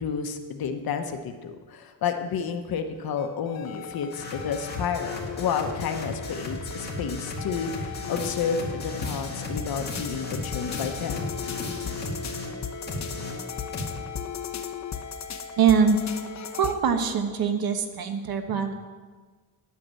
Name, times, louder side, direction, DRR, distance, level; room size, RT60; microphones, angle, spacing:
voice 1, 0.0-11.2, left 6 dB, 75° left, 6 dB, 1.0 m, -31 dB
sound 1, 2.9-16.7, left 7 dB, 50° left, 0.9 m, -37 dB
sound 2, 4.1-12.6 12.9-14.0, left 2 dB, 25° left, 2.1 m, -36 dB
voice 2, 15.6-16.0 16.5-18.7, right 6 dB, 75° right, 7 dB, 1.2 m, -23 dB
11.0 x 8.4 x 7.6 m, 1.4 s
wide cardioid pair, 175°, 36 cm